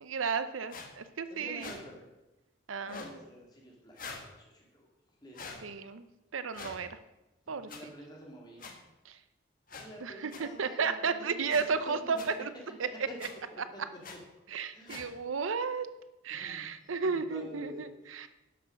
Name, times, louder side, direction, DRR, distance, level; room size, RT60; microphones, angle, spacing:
voice 1, 0.0-1.7 2.7-3.0 5.6-6.1 6.3-7.0 7.5-7.9 9.0-9.2 10.0-12.5 12.8-13.1 13.6-13.9 14.5-15.9 16.2-18.3, right 5 dB, 85° right, 12 dB, 0.7 m, -33 dB
sound 1, 0.7-0.9 1.6-1.8 2.8-3.1 4.0-4.3 5.3-5.6 6.5-6.8 7.7-7.8 8.6-8.7 9.7-9.9 10.3-10.4 11.5-11.6 12.2-12.3 13.2-13.3 14.0-14.2 14.9-15.1, left 4 dB, 45° left, 1.3 m, -44 dB
voice 2, 1.3-2.0 3.0-4.9 5.2-5.6 7.7-8.6 9.8-12.2 12.8-13.0 13.5-13.8 14.7-15.0 16.4-16.7 17.0-17.9, right 1 dB, 20° left, -1 dB, 2.3 m, -48 dB
11.5 x 6.2 x 6.4 m, 1.0 s
head